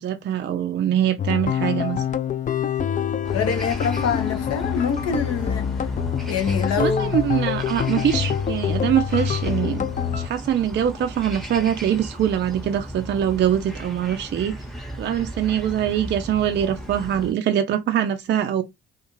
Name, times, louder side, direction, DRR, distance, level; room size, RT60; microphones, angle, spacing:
voice 1, 0.0-2.0 6.8-14.6 15.0-18.6, right 10 dB, 35° right, 0.4 m, -23 dB
sound 1, 1.2-10.3, left 8 dB, 25° left, 0.4 m, -25 dB
sound 2, 3.2-17.3, right 1 dB, ahead, 0.8 m, -36 dB
voice 2, 3.3-5.9 6.3-7.1, left 6 dB, 55° left, 0.7 m, -25 dB
2.5 x 2.4 x 2.9 m
hypercardioid pair, 45°, 30 cm